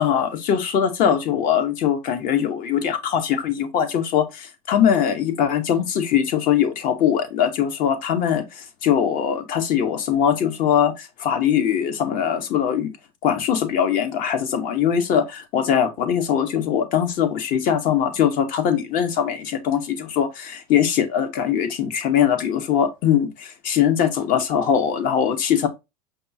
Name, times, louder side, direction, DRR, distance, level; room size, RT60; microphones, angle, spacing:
voice 1, 0.0-12.9 13.2-25.7, left 8 dB, 45° left, 0.9 m, -21 dB
5.2 x 2.4 x 2.6 m
hypercardioid pair, 100°, 19 cm